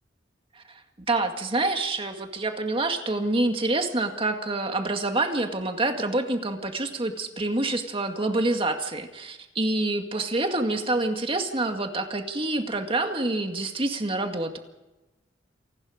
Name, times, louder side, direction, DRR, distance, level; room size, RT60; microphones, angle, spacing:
voice 1, 1.1-14.6, right 2 dB, 30° right, 5 dB, 2.1 m, -27 dB
28.0 x 19.5 x 5.1 m, 1.0 s
head